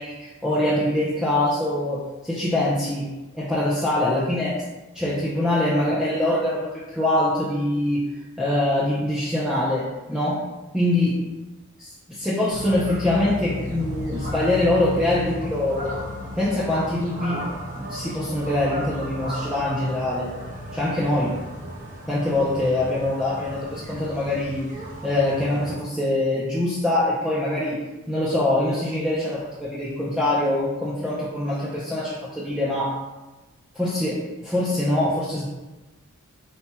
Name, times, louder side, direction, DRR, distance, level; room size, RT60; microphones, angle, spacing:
voice 1, 0.0-3.1 3.3-4.6 4.9-8.0 8.4-10.4 10.7-11.1 11.8-16.0 16.3-17.4 17.8-20.3 20.7-21.4 22.1-24.7 25.0-27.8 28.1-33.0 33.8-35.5, left 1 dB, 5° right, -8 dB, 0.5 m, -24 dB
sound 1, 12.5-25.7, equal, 35° right, 0.8 m, -34 dB
4.3 x 4.2 x 2.2 m, 1.1 s
head